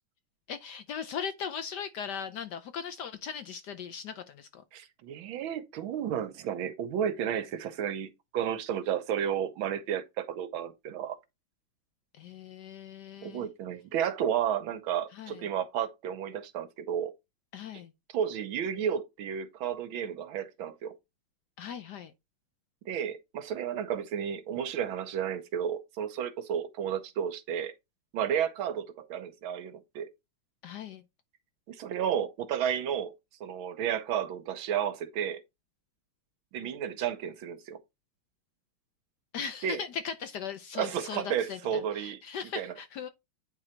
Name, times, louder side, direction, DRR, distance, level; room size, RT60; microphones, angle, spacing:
voice 1, 0.5-4.6 12.2-13.5 15.1-15.4 17.5-17.9 21.6-22.1 30.6-31.0 39.3-43.1, left 7 dB, 70° left, 1.1 m, -39 dB
voice 2, 4.7-11.2 13.2-17.1 18.1-20.9 22.9-27.7 28.1-30.1 31.7-33.1 33.4-35.4 36.5-37.8 39.6-39.8 40.7-42.2 42.5-42.7, right 9 dB, 75° right, 1.6 m, -32 dB
9.0 x 3.8 x 4.4 m
omnidirectional pair, 2.3 m